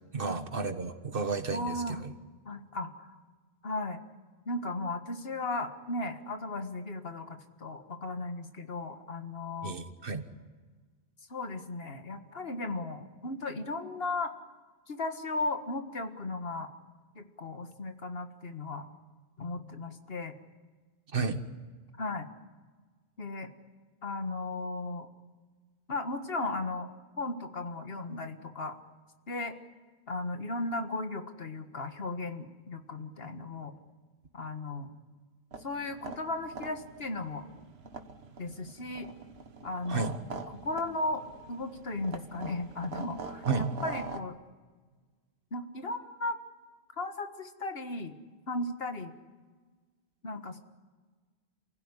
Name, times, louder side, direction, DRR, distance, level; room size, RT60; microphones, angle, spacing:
voice 1, 0.1-2.1 9.6-10.2 21.1-21.4 39.9-40.1 43.5-43.7, right 4 dB, 60° right, 8 dB, 1.7 m, -32 dB
voice 2, 1.5-2.1 2.5-3.2 3.6-4.0 4.5-9.8 11.3-14.3 14.9-16.7 17.2-18.9 19.4-20.4 22.0-22.3 23.2-23.5 24.0-25.1 25.9-26.9 27.2-28.8 29.3-29.6 30.1-33.7 34.3-34.9 35.6-37.5 38.4-39.1 39.6-40.1 40.5-41.2 41.5-44.4 45.5-46.4 47.0-48.2 48.5-49.1 50.2-50.6, left 2 dB, 70° left, 7 dB, 1.9 m, -36 dB
sound 1, 35.5-44.2, right 4 dB, 85° right, 1.4 m, -44 dB
28.5 x 16.0 x 9.9 m, 1.4 s
omnidirectional pair, 1.0 m